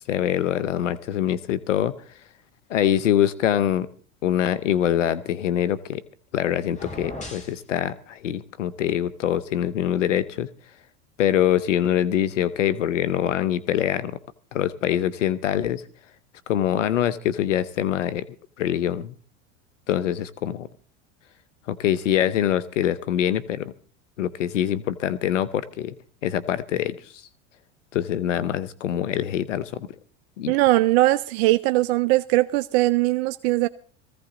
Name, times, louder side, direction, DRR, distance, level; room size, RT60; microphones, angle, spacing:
voice 1, 0.1-1.9 2.7-3.9 4.2-6.0 6.3-10.5 11.2-14.2 14.5-15.8 16.5-18.2 18.6-19.1 19.9-20.7 21.7-23.7 24.2-25.9 26.2-26.9 27.9-29.9 30.4-30.5, left 10 dB, 90° left, 15 dB, 0.9 m, -24 dB
sound 1, 6.7-7.6, left 2 dB, 20° left, 4.8 m, -37 dB
voice 2, 30.5-33.7, right 18 dB, 60° right, 13 dB, 0.7 m, -20 dB
17.0 x 15.5 x 3.9 m, 0.43 s
hypercardioid pair, 90°, 36 cm